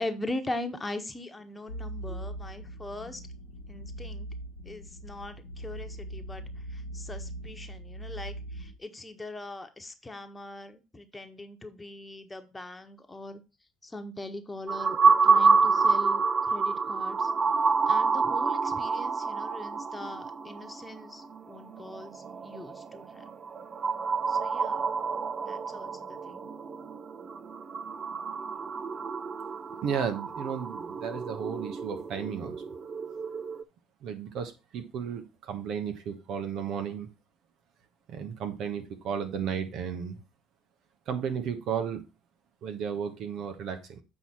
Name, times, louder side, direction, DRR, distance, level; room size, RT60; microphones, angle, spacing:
voice 1, 0.0-3.2 3.7-4.3 4.6-6.4 6.7-13.4 13.8-17.3 17.9-23.2 24.3-24.8 25.4-26.5, left 2 dB, 15° left, 7 dB, 1.3 m, -41 dB
sound 1, 1.7-8.8, right 1 dB, 90° left, 1.0 m, -40 dB
sound 2, 14.7-33.6, right 4 dB, 35° right, 0.6 m, -28 dB
voice 2, 29.8-32.6 34.0-37.1 38.1-40.2 41.1-42.0 42.6-44.0, right 7 dB, 60° right, 7 dB, 1.2 m, -34 dB
8.0 x 4.8 x 4.4 m, 0.28 s
hypercardioid pair, 65°, 0 cm